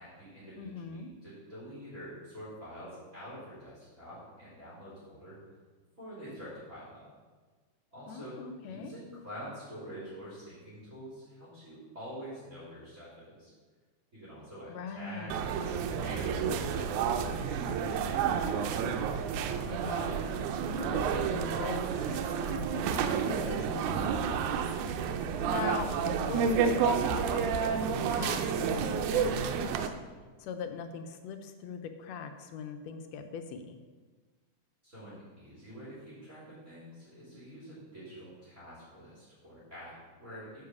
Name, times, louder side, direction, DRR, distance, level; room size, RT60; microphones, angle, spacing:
voice 1, 0.0-5.4 6.0-7.1 7.9-8.4 8.6-13.5 14.1-18.8 34.8-40.7, equal, 25° right, -9 dB, 3.2 m, -46 dB
voice 2, 0.6-1.1 8.1-8.9 14.7-15.4 19.6-24.4 25.4-29.9 30.4-33.8, left 6 dB, 75° left, 7 dB, 1.6 m, -41 dB
sound 1, 15.3-29.9, right 6 dB, 85° right, 2.0 m, -30 dB
9.7 x 4.7 x 6.9 m, 1.4 s
omnidirectional pair, 3.4 m